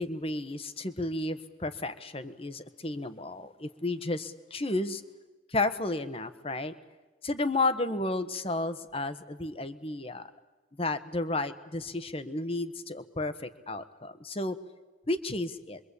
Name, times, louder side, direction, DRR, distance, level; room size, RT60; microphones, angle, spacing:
voice 1, 0.0-5.0 5.5-6.7 7.2-10.3 10.8-14.6 15.1-15.8, left 2 dB, 30° left, 11 dB, 1.3 m, -32 dB
26.5 x 23.5 x 8.5 m, 1.2 s
head